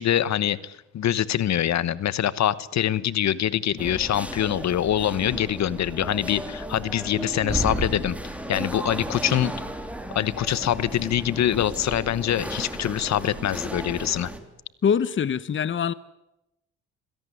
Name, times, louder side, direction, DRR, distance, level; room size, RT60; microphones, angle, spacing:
voice 1, 0.0-8.2 8.5-9.5 10.1-14.3, left 11 dB, 65° left, 18 dB, 1.1 m, -24 dB
sound 1, 3.8-14.4, right 1 dB, 5° right, 3.4 m, -34 dB
voice 2, 14.8-15.9, left 7 dB, 40° left, 17 dB, 0.9 m, -23 dB
25.5 x 17.5 x 9.8 m, 0.89 s
cardioid pair, 90°, 30 cm